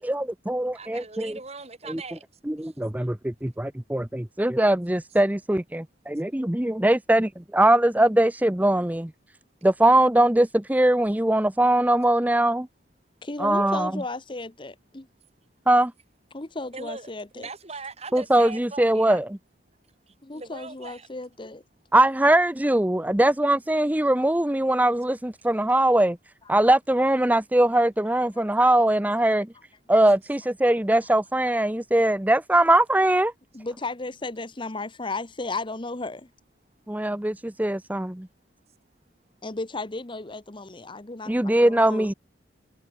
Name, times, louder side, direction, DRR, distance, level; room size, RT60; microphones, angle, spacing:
voice 1, 0.0-1.4 1.9-2.0 2.5-9.1 9.6-12.7 13.4-14.0 15.7-15.9 18.1-19.2 21.9-26.2 26.5-29.5 29.9-33.3 36.9-38.3 41.3-42.1, right 1 dB, 10° right, 0.6 m, -21 dB
voice 2, 0.7-2.2 2.6-2.7 16.7-19.2 20.1-21.1, right 3 dB, 35° right, 3.0 m, -40 dB
voice 3, 13.2-15.1 16.3-17.5 20.2-21.6 28.3-28.4 33.5-36.3 39.4-42.1, left 2 dB, 25° left, 1.0 m, -34 dB
head